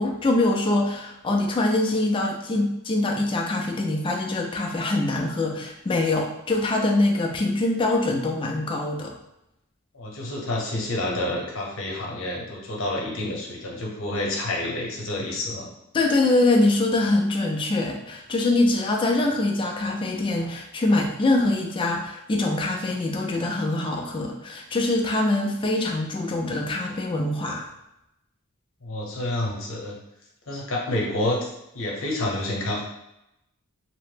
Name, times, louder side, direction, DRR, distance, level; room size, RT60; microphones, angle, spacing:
voice 1, 0.0-9.1 15.9-27.7, left 2 dB, 25° left, 1 dB, 0.3 m, -24 dB
voice 2, 9.9-15.7 28.8-30.0 30.5-31.5 31.7-32.8, left 1 dB, 60° left, -2 dB, 0.8 m, -28 dB
2.8 x 2.0 x 3.2 m, 0.87 s
head